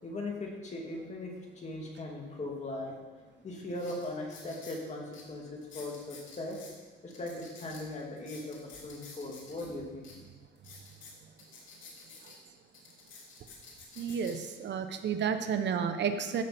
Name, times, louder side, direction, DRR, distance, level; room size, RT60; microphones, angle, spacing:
voice 1, 0.0-2.9 3.4-6.6 7.0-8.6 8.8-10.1, left 2 dB, 35° left, -1 dB, 2.7 m, -39 dB
sound 1, 3.0-3.1 3.7-4.8 5.1-5.2 5.6-6.7 7.1-9.7 10.0-10.1 10.5-12.3 12.7-14.5 15.1-15.4, left 4 dB, 75° left, 3.4 m, -51 dB
voice 2, 14.0-16.4, right 7 dB, 65° right, 9 dB, 0.9 m, -31 dB
14.5 x 6.7 x 4.3 m, 1.4 s
cardioid pair, 90°, 20 cm